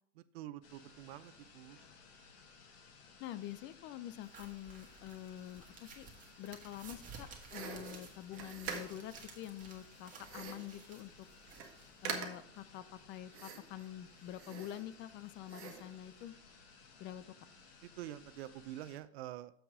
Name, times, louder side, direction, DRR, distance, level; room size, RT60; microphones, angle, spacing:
voice 1, 0.3-1.8 17.8-19.5, right 13 dB, 70° right, 15 dB, 0.7 m, -47 dB
sound 1, 0.6-19.0, left 5 dB, 65° left, 2.1 m, -60 dB
voice 2, 3.2-6.1 6.4-11.3 12.0-16.3 17.0-17.4, left 12 dB, 35° left, 14 dB, 0.5 m, -47 dB
sound 2, 4.2-12.4, right 5 dB, 25° right, 1.6 m, -55 dB
sound 3, 7.5-9.2 10.2-10.7 11.2-11.3 11.5-11.7 12.0-12.6 13.3-13.9 14.3-15.1 15.5-15.9, right 7 dB, 40° right, 1.4 m, -44 dB
7.2 x 6.0 x 4.8 m, 0.66 s
supercardioid pair, 130°, 32 cm